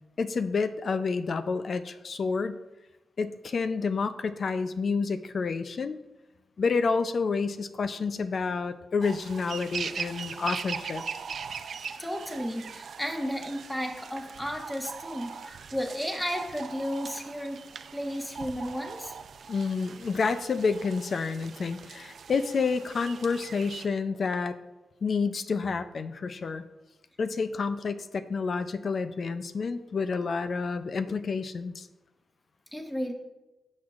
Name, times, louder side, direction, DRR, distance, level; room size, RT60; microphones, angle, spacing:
voice 1, 0.2-2.6 3.2-6.0 6.6-11.0 19.5-24.6 25.0-26.6 27.2-31.9, left 4 dB, 55° left, 10 dB, 0.5 m, -29 dB
sound 1, 9.0-23.9, right 6 dB, 65° right, 0.5 m, -40 dB
voice 2, 12.0-17.6 17.9-19.1 32.7-33.1, equal, 5° left, 3 dB, 1.2 m, -33 dB
15.5 x 6.4 x 2.5 m, 1.0 s
cardioid pair, 100°, 0 cm